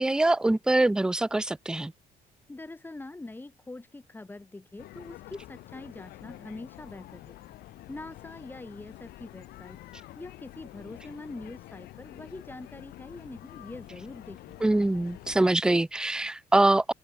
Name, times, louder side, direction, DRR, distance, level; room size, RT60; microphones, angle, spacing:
voice 1, 0.0-1.9 14.6-16.9, right 2 dB, 5° right, 0.4 m, -24 dB
voice 2, 2.5-7.4 7.9-9.8 10.2-14.6, left 2 dB, 10° left, 1.2 m, -44 dB
sound 1, 4.8-15.4, left 16 dB, 80° left, 0.8 m, -48 dB
open air
cardioid pair, 100°, 16 cm